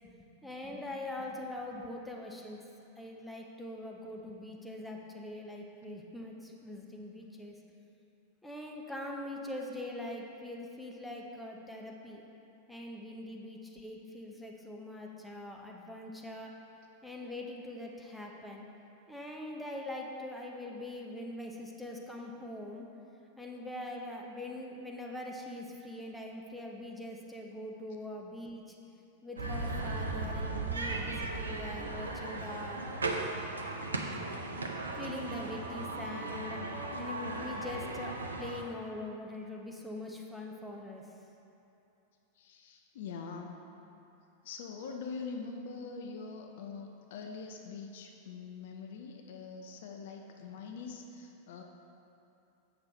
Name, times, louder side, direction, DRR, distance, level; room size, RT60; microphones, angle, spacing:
voice 1, 0.4-2.6 3.0-7.5 8.4-12.2 12.7-16.5 17.0-18.6 19.1-22.9 23.4-28.7 29.2-32.8 34.9-41.1, left 1 dB, 5° left, -1 dB, 0.9 m, -43 dB
sound 1, 29.4-38.6, right 2 dB, 75° right, 0.6 m, -37 dB
voice 2, 42.4-43.6 44.4-51.6, left 5 dB, 55° left, 3 dB, 0.6 m, -43 dB
7.9 x 6.3 x 4.2 m, 2.8 s
figure-of-eight pair, 90°, 0 cm